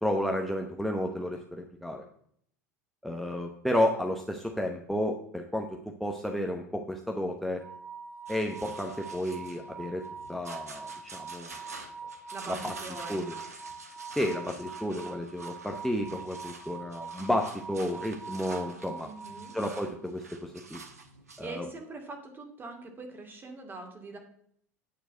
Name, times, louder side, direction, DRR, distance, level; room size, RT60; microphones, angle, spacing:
voice 1, 0.0-2.0 3.0-7.6 8.3-10.0 10.3-11.5 12.5-12.7 13.1-13.3 14.1-19.1 19.5-20.8 21.4-21.6, left 1 dB, ahead, 1 dB, 0.9 m, -32 dB
sound 1, 7.6-19.8, right 5 dB, 60° right, 4.5 m, -44 dB
sound 2, 8.3-21.5, right 4 dB, 80° right, 1.1 m, -47 dB
voice 2, 12.3-13.5 19.0-19.5 21.4-24.2, right 3 dB, 25° right, 3 dB, 2.3 m, -43 dB
9.2 x 4.5 x 7.6 m, 0.66 s
figure-of-eight pair, 75°, 8 cm